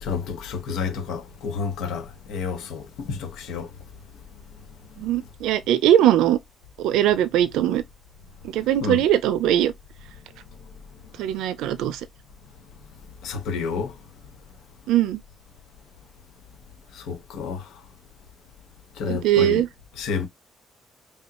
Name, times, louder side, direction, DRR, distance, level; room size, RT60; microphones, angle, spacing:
voice 1, 0.0-3.7 8.6-9.0 13.2-14.0 16.9-17.7 19.0-19.6 20.0-20.3, left 5 dB, 85° left, 1.4 m, -30 dB
voice 2, 5.0-6.4 6.8-7.8 8.5-9.7 11.2-12.0 14.9-15.2 19.1-19.7, right 11 dB, 85° right, 0.6 m, -20 dB
5.6 x 2.4 x 3.0 m
cardioid pair, 80°, 0 cm